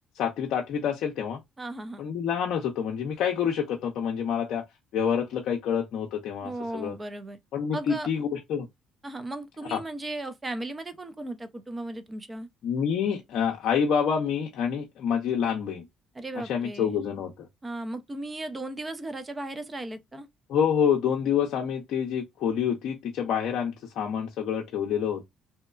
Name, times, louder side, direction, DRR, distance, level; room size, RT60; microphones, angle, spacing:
voice 1, 0.1-1.4 2.0-4.6 4.9-6.9 7.5-8.7 9.7-9.8 12.6-15.8 16.5-17.5 20.5-25.3, left 7 dB, 70° left, 0.5 m, -27 dB
voice 2, 1.6-2.0 6.4-7.4 7.7-8.1 9.0-12.5 16.1-17.0 17.6-20.3, right 2 dB, 25° right, 0.6 m, -36 dB
2.7 x 2.2 x 2.3 m
supercardioid pair, 80°, 0 cm